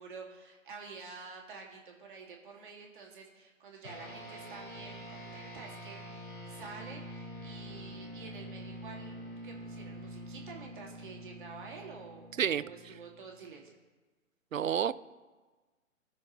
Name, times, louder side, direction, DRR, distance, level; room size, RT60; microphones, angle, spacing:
voice 1, 0.0-9.2 9.4-13.8, right 4 dB, 35° right, -1 dB, 2.1 m, -49 dB
sound 1, 3.8-13.5, equal, 80° left, 2.9 m, -46 dB
voice 2, 14.5-14.9, right 8 dB, 70° right, 17 dB, 0.5 m, -29 dB
19.0 x 6.3 x 3.0 m, 1.3 s
figure-of-eight pair, 135°, 42 cm